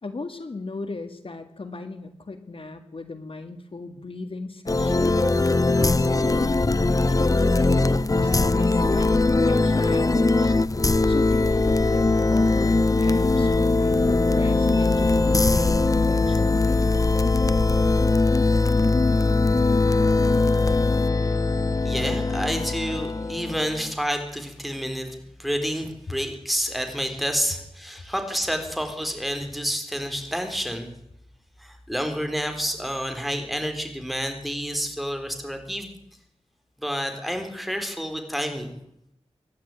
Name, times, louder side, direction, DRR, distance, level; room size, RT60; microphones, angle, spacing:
voice 1, 0.0-5.2 5.8-6.6 7.1-9.1 9.5-10.6 11.1-16.9, left 3 dB, 60° left, 8 dB, 1.9 m, -36 dB
sound 1, 4.7-23.9, left 3 dB, 35° left, 0.7 m, -21 dB
voice 2, 21.8-30.9 31.6-35.9 36.8-38.8, equal, ahead, 5 dB, 4.2 m, -29 dB
24.5 x 11.5 x 9.3 m, 0.76 s
wide cardioid pair, 75°, 10 cm